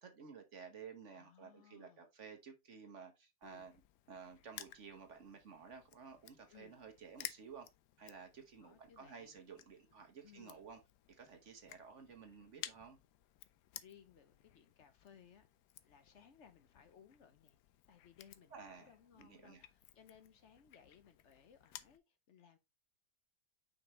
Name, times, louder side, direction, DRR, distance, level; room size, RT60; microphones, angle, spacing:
voice 1, 0.0-3.7 4.1-7.7 8.0-10.8 11.1-13.0 18.5-18.9 19.2-19.6, right 6 dB, 50° right, 1.3 m, -54 dB
voice 2, 1.1-2.1 3.4-3.7 6.5-6.8 8.6-9.4 10.2-10.7 13.7-15.5 15.8-17.6 17.9-22.6, left 8 dB, 50° left, 1.0 m, -63 dB
Crushing, 3.4-22.0, left 13 dB, 80° left, 1.1 m, -56 dB
6.0 x 5.1 x 3.1 m
omnidirectional pair, 1.8 m